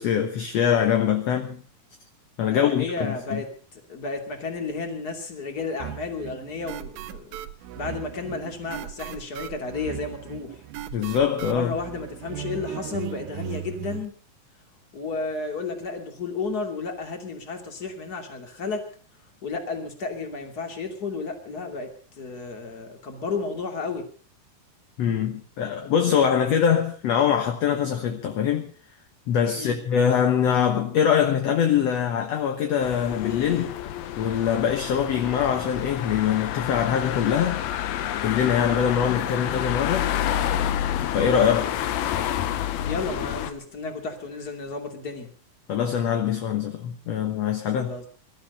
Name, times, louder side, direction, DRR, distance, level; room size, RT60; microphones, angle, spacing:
voice 1, 0.0-1.6 2.4-3.4 10.9-11.8 25.0-28.7 29.3-33.8 34.2-37.6 38.2-40.1 41.1-41.8 45.7-47.9, left 8 dB, 60° left, 1.9 m, -23 dB
voice 2, 2.5-7.3 7.8-10.5 11.5-14.1 14.9-18.8 19.4-21.9 22.2-24.0 29.5-29.8 42.9-45.3 47.7-48.1, left 4 dB, 30° left, 2.7 m, -32 dB
sound 1, 5.8-14.1, right 13 dB, 75° right, 2.6 m, -37 dB
sound 2, 32.8-43.5, left 11 dB, 90° left, 3.0 m, -29 dB
21.0 x 13.0 x 5.3 m
omnidirectional pair, 4.3 m